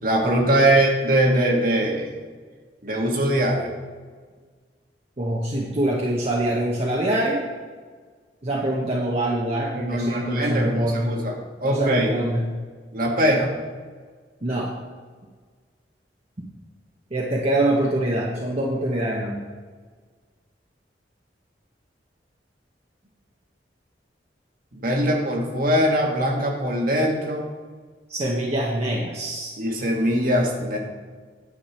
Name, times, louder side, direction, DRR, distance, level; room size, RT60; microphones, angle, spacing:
voice 1, 0.0-2.1 2.8-3.7 9.7-11.3 11.6-12.1 12.9-13.5 24.7-27.5 29.6-30.8, right 1 dB, 55° right, 1 dB, 1.6 m, -22 dB
voice 2, 5.2-7.4 8.4-11.1 11.6-12.4 14.4-14.7 17.1-19.4 28.1-29.5, right 1 dB, 35° right, -3 dB, 1.0 m, -24 dB
10.0 x 6.6 x 4.4 m, 1.5 s
head